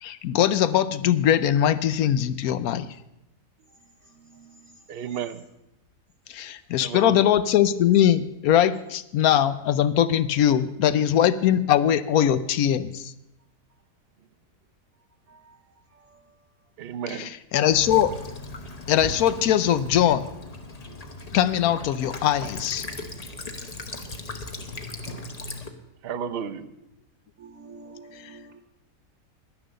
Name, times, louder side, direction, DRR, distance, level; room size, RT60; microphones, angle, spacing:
voice 1, 0.0-2.9 6.3-13.1 17.2-18.1 18.9-20.3 21.3-22.8, left 10 dB, 70° left, 14 dB, 1.0 m, -21 dB
voice 2, 4.2-4.5 15.3-15.4 27.4-28.6, right 3 dB, 60° right, 6 dB, 1.2 m, -47 dB
voice 3, 4.9-5.4 6.8-7.2 16.8-17.3 26.0-26.7, right 8 dB, 80° right, 10 dB, 0.5 m, -32 dB
Child speech kid speaking / Bird vocalization bird call bird song / Stream, 17.7-25.7, left 2 dB, 30° left, 0.9 m, -37 dB
11.0 x 10.0 x 6.6 m, 0.86 s
omnidirectional pair, 1.8 m